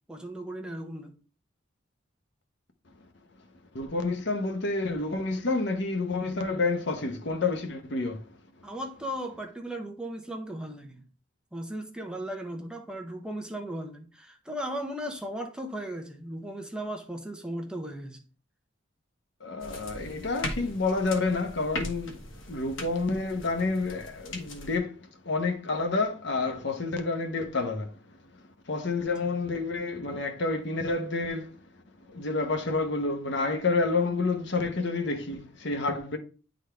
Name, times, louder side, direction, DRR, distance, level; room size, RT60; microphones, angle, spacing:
voice 1, 0.1-1.1 8.6-11.0 11.5-18.2 29.2-29.4, right 1 dB, 5° right, 0.8 m, -36 dB
voice 2, 3.7-8.2 19.4-22.2 22.5-24.9 25.2-27.9 28.7-31.5 32.1-36.2, left 3 dB, 60° left, 1.0 m, -29 dB
sound 1, 19.6-24.8, left 1 dB, 85° left, 1.4 m, -39 dB
9.9 x 4.0 x 3.4 m
head